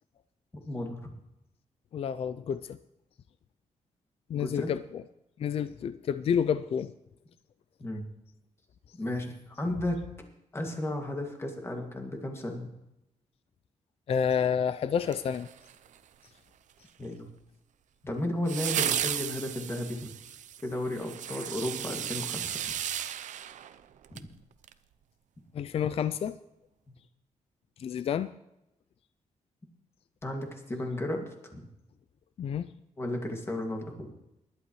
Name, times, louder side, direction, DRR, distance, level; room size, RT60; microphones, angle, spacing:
voice 1, 0.7-1.1 4.3-4.7 7.8-8.1 8.9-10.0 10.5-12.7 17.0-17.3 18.0-20.1 20.6-22.6 24.1-24.2 30.2-31.6 33.0-34.1, left 1 dB, 20° left, 2 dB, 2.1 m, -34 dB
voice 2, 1.9-2.8 4.3-5.0 5.4-6.9 14.1-15.5 25.5-26.4 27.8-28.3 32.4-32.7, left 7 dB, 50° left, 13 dB, 0.4 m, -29 dB
sound 1, 15.0-16.0 18.5-24.3 24.6-24.7, right 10 dB, 80° right, 0.6 m, -34 dB
20.0 x 11.5 x 3.1 m, 0.88 s
wide cardioid pair, 130°, 13 cm